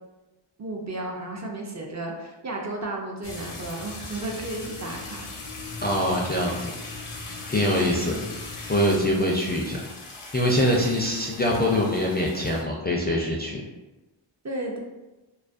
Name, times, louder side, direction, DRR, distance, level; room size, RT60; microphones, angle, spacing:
voice 1, 0.6-5.3 7.9-8.3 14.4-14.8, right 2 dB, 35° right, 0 dB, 0.4 m, -33 dB
sound 1, 3.2-12.6, left 3 dB, 85° left, 0.7 m, -39 dB
voice 2, 5.8-6.7 7.5-8.2 8.7-9.8 10.3-13.6, left 1 dB, 25° left, -3 dB, 0.3 m, -23 dB
2.3 x 2.1 x 2.4 m, 1.1 s
cardioid pair, 45°, 49 cm